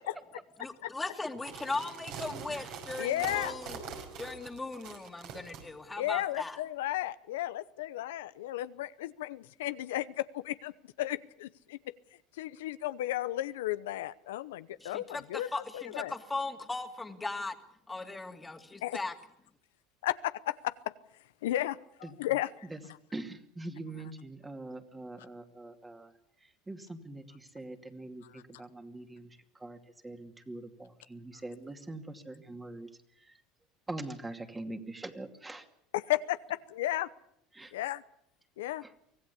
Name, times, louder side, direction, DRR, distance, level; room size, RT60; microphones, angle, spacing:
voice 1, 0.6-3.8 4.2-6.6 14.8-17.6 17.9-19.1, left 3 dB, 15° left, 6 dB, 2.3 m, -38 dB
sound 1, 1.3-5.6, right 6 dB, 65° right, 5.5 m, -43 dB
voice 2, 3.0-3.5 6.0-11.9 12.3-16.1 18.8-19.0 20.0-20.9 21.4-23.0 28.2-28.4 35.9-37.1 37.7-38.0 38.6-38.8, left 14 dB, 90° left, 14 dB, 0.8 m, -34 dB
voice 3, 23.1-26.1 26.4-29.8 30.0-32.9 33.2-33.4 33.9-35.7 37.5-37.7, right 2 dB, 15° right, 6 dB, 2.5 m, -43 dB
24.5 x 16.0 x 8.4 m, 0.74 s
supercardioid pair, 105°, 0 cm